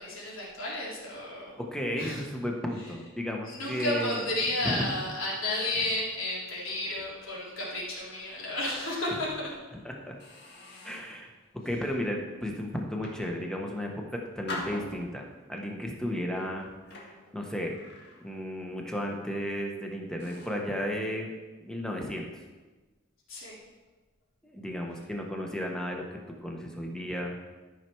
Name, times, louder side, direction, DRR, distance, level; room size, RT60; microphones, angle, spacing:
voice 1, 0.0-1.6 2.0-2.2 3.5-9.5 23.3-23.6, left 1 dB, 75° left, -6 dB, 3.5 m, -32 dB
voice 2, 1.6-4.2 4.6-4.8 9.1-9.2 9.8-10.1 10.8-11.3 11.6-16.7 17.0-17.7 18.2-21.3 21.7-22.4 24.4-26.0 26.4-27.3, equal, 5° left, 1 dB, 1.1 m, -34 dB
sound 1, 6.6-8.4 8.8-9.0 9.6-9.7 10.2-11.2 11.8-12.1 12.8-13.8 14.5-15.5 16.2-18.6 18.9-19.2 19.7-19.8 20.2-20.7, left 2 dB, 55° left, 1.8 m, -45 dB
12.5 x 5.8 x 4.6 m, 1.3 s
head